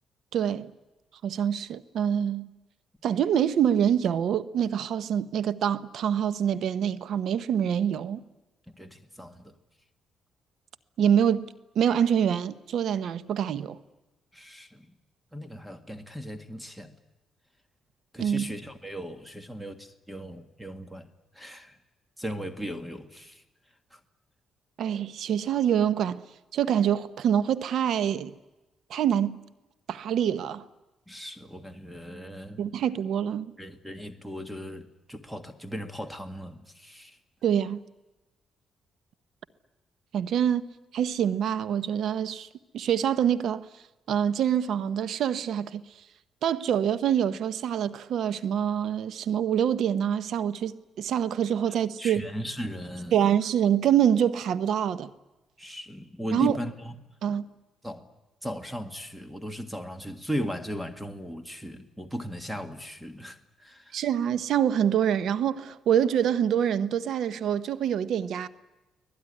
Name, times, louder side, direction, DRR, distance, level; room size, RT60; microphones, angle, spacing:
voice 1, 0.3-0.7 1.2-2.5 3.0-8.2 11.0-11.5 11.7-13.8 18.2-18.5 24.8-26.2 26.5-28.3 28.9-29.4 29.9-30.6 32.6-33.5 37.4-37.8 40.1-42.5 42.7-43.7 44.1-45.8 46.4-52.3 53.1-55.1 56.3-56.6 57.2-57.5 63.9-68.5, right 9 dB, 70° right, 0.9 m, -25 dB
voice 2, 8.7-9.5 14.3-14.9 15.3-16.9 18.1-21.1 21.3-21.8 22.2-23.4 23.9-24.0 31.1-32.6 33.6-37.2 51.7-53.1 55.6-57.0 57.8-58.1 58.4-64.0, equal, 5° right, 1.8 m, -37 dB
24.5 x 18.5 x 9.9 m
cardioid pair, 90°, 0 cm